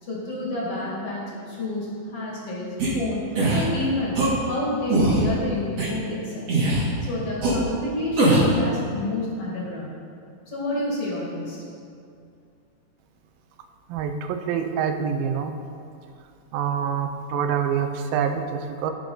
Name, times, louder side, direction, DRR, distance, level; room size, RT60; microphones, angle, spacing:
voice 1, 0.0-3.2 3.5-6.5 7.0-9.9 10.5-11.6, left 2 dB, 45° left, -5 dB, 2.9 m, -29 dB
sound 1, 2.8-2.9 3.4-3.6 4.1-4.3 4.9-5.2 5.8-5.9 6.5-6.9 7.4-7.5 8.2-8.5, right 2 dB, 50° right, 3.1 m, -20 dB
voice 2, 13.9-15.5 16.5-18.9, right 7 dB, 90° right, 6 dB, 2.5 m, -26 dB
16.5 x 6.7 x 4.0 m, 2.4 s
omnidirectional pair, 4.0 m